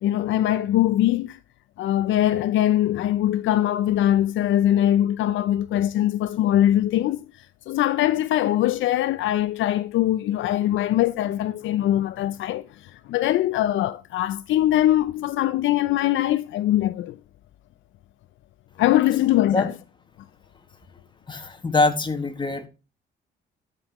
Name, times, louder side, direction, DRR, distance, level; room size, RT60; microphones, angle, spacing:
voice 1, 0.0-1.4 1.8-7.2 7.7-12.7 13.1-17.2 18.8-19.7, left 13 dB, 75° left, 0.4 m, -22 dB
voice 2, 21.3-22.7, left 3 dB, 25° left, 1.6 m, -23 dB
13.0 x 5.3 x 3.0 m
cardioid pair, 90°, 20 cm